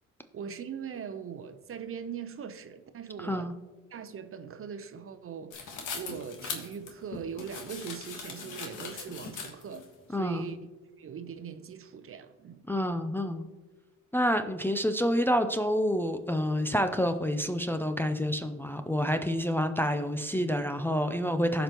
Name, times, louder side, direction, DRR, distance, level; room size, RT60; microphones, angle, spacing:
voice 1, 0.3-3.5 3.9-10.7 11.0-12.6, right 7 dB, 45° right, 0.7 m, -41 dB
voice 2, 3.2-3.5 10.1-10.5 12.7-13.5 14.1-21.6, equal, 5° left, 0.5 m, -28 dB
sound 1, 5.5-9.9, left 5 dB, 80° left, 1.4 m, -40 dB
15.0 x 5.2 x 3.0 m
cardioid pair, 90°, 30 cm